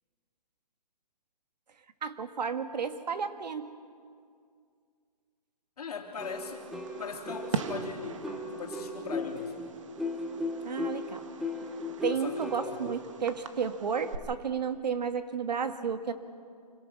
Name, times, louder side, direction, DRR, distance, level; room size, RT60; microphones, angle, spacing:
voice 1, 2.0-3.7 10.6-11.2 12.0-16.1, right 6 dB, 85° right, 9 dB, 1.7 m, -32 dB
voice 2, 5.8-6.7 7.0-8.2 8.5-9.6 12.1-13.0, left 5 dB, 65° left, 2 dB, 3.0 m, -40 dB
sound 1, 6.2-13.0, left 2 dB, ahead, 0.5 m, -37 dB
Fireworks, 6.2-14.2, right 6 dB, 50° right, 1.3 m, -42 dB
26.0 x 18.0 x 6.1 m, 2.2 s
hypercardioid pair, 170°, 21 cm